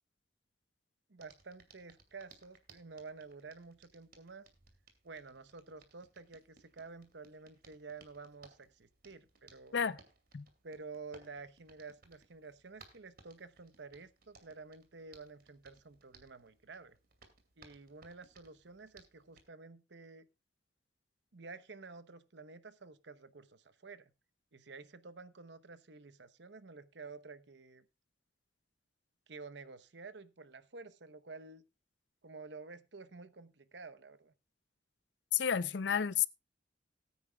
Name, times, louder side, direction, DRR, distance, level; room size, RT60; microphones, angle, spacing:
voice 1, 1.1-4.4 5.0-9.8 10.6-17.0 17.6-20.3 21.3-24.1 24.5-27.9 29.3-31.6 32.2-34.3, right 4 dB, 75° right, 0.9 m, -51 dB
Hands, 1.2-19.5, right 4 dB, 55° right, 2.4 m, -64 dB
voice 2, 35.3-36.3, left 8 dB, 75° left, 0.5 m, -31 dB
18.5 x 9.3 x 2.3 m
head